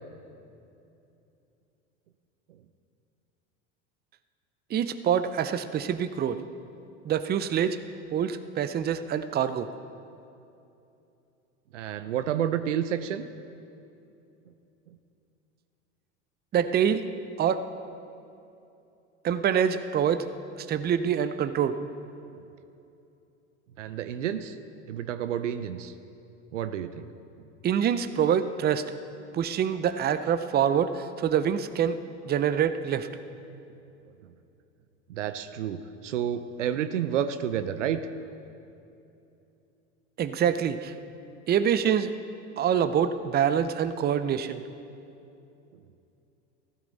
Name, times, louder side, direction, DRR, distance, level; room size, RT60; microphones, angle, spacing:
voice 1, 4.7-6.4 7.0-7.8 8.1-9.7 16.5-17.1 17.4-17.6 19.2-20.3 20.6-21.8 27.6-28.9 29.3-32.0 32.2-33.1 40.2-40.9 41.5-42.1 42.6-44.6, right 8 dB, 25° right, 11 dB, 0.6 m, -25 dB
voice 2, 11.7-13.3 23.8-24.6 24.9-25.9 26.5-27.1 35.1-38.1, right 9 dB, 85° right, 11 dB, 0.7 m, -30 dB
15.0 x 12.5 x 4.1 m, 2.8 s
hypercardioid pair, 85°, 36 cm